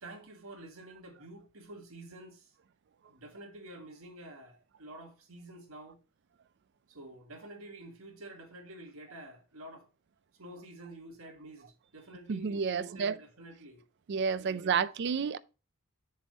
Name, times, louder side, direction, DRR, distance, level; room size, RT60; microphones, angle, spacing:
voice 1, 0.0-2.5 3.0-6.0 6.9-9.9 10.3-13.8 14.4-14.9, right 1 dB, 70° right, 1.5 m, -49 dB
voice 2, 12.3-13.2 14.1-15.4, right 6 dB, 50° right, 0.4 m, -30 dB
7.4 x 3.4 x 5.3 m
head